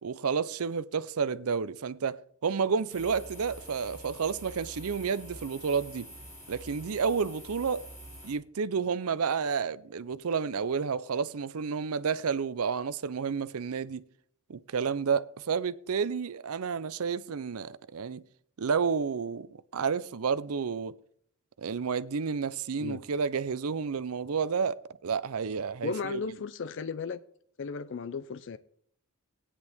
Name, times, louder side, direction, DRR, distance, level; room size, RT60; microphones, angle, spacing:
voice 1, 0.0-2.2 2.4-6.1 6.5-7.8 8.2-14.0 14.5-18.2 18.6-20.9 21.6-26.2, right 6 dB, 75° right, 0.5 m, -30 dB
sound 1, 2.9-8.3, equal, 10° left, 6.3 m, -47 dB
voice 2, 25.8-27.2 27.6-28.6, left 5 dB, 55° left, 0.4 m, -35 dB
17.0 x 9.9 x 3.5 m
head